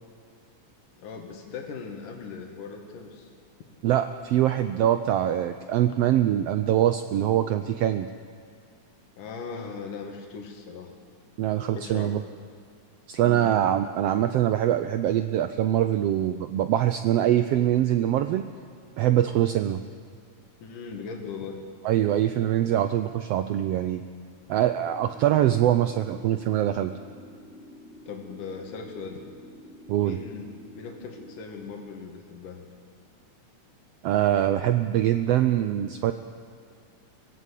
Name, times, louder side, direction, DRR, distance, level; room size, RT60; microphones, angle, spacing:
voice 1, 1.0-3.3 9.2-10.9 11.8-12.2 13.2-13.5 20.6-21.6 28.1-29.2 30.0-32.7, left 5 dB, 85° left, 3 dB, 3.5 m, -39 dB
voice 2, 3.8-8.1 11.4-12.2 13.1-18.4 19.0-19.8 21.8-24.0 24.5-26.9 29.9-30.2 34.0-36.1, right 12 dB, 85° right, 10 dB, 1.4 m, -23 dB
sound 1, 24.8-31.4, equal, 5° right, 1.9 m, -48 dB
23.5 x 16.5 x 8.3 m, 2.2 s
omnidirectional pair, 3.6 m